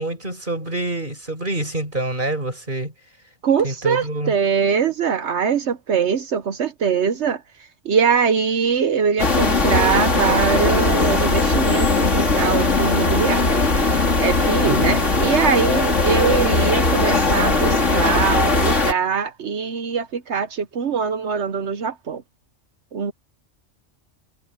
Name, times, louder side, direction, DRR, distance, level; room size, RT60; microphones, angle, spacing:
voice 1, 0.0-2.9 3.6-4.4 14.6-15.1, right 1 dB, 45° right, 5.7 m, -27 dB
voice 2, 3.4-7.4 7.8-13.5 14.2-22.2 22.9-23.1, right 6 dB, 70° right, 1.2 m, -22 dB
sound 1, 9.2-18.9, left 3 dB, 85° left, 3.4 m, -19 dB
omnidirectional pair, 1.2 m